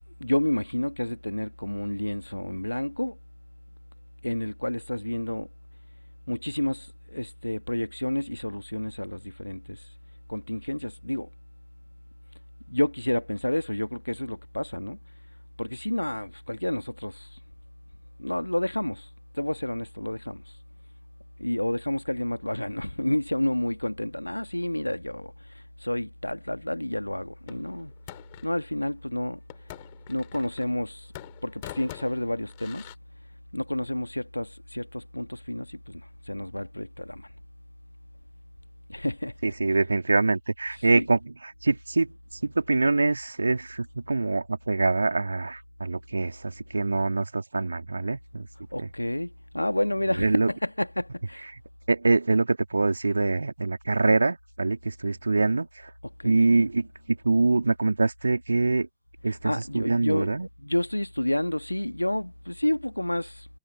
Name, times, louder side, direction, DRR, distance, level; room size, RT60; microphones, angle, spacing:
voice 1, 0.2-3.2 4.2-5.5 6.3-9.8 10.3-11.3 12.7-15.0 15.6-17.4 18.2-20.5 21.4-27.9 28.4-29.4 30.1-31.1 31.4-32.9 33.5-37.3 38.9-39.5 40.8-41.1 48.7-51.5 56.0-56.4 59.2-63.5, left 1 dB, 85° left, 1.7 m, -30 dB
sound 1, 27.5-28.5 29.5-30.8 31.1-32.9, left 19 dB, 50° left, 4.4 m, -44 dB
voice 2, 39.4-41.2 41.6-42.1 42.4-48.5 48.8-48.9 50.2-50.5 51.9-55.7 56.2-58.9 59.2-60.5, right 3 dB, 80° right, 2.3 m, -24 dB
figure-of-eight pair, 90°, 0 cm